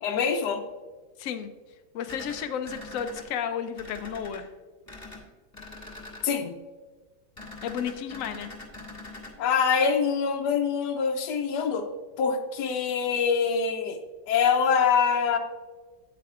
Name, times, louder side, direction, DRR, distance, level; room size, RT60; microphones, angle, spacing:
voice 1, 0.0-0.6 6.2-6.5 9.4-11.9 12.2-14.0 14.3-15.4, left 6 dB, 70° left, 3 dB, 1.2 m, -24 dB
voice 2, 1.9-4.5 7.6-8.5, left 8 dB, 85° left, 8 dB, 0.7 m, -32 dB
sound 1, 2.1-3.2 3.8-4.4 4.9-5.2 5.5-6.3 7.4-9.3, left 2 dB, 10° left, 1.7 m, -43 dB
9.4 x 8.5 x 2.4 m, 1.4 s
omnidirectional pair, 2.1 m